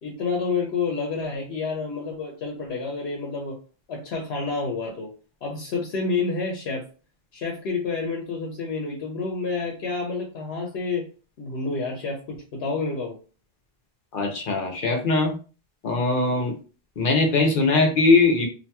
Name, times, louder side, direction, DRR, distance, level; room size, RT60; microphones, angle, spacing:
voice 1, 0.0-3.6 3.9-5.1 5.4-6.8 7.3-11.1 11.4-13.2, left 4 dB, 90° left, -1 dB, 0.9 m, -29 dB
voice 2, 14.1-15.3 15.8-16.5 17.0-18.5, left 3 dB, 60° left, 2 dB, 0.8 m, -20 dB
2.8 x 2.6 x 2.2 m, 0.36 s
omnidirectional pair, 1.0 m